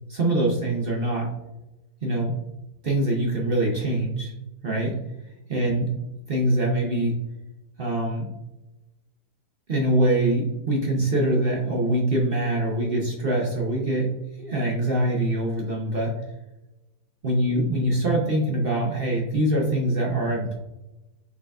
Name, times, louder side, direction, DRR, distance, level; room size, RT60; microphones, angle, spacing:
voice 1, 0.1-1.3 2.0-2.4 2.8-4.3 4.6-5.0 5.5-5.9 6.3-7.1 7.8-8.3 9.7-14.1 14.4-16.2 17.2-20.5, right 1 dB, 45° right, -2 dB, 0.8 m, -24 dB
6.0 x 3.7 x 2.3 m, 0.97 s
omnidirectional pair, 1.8 m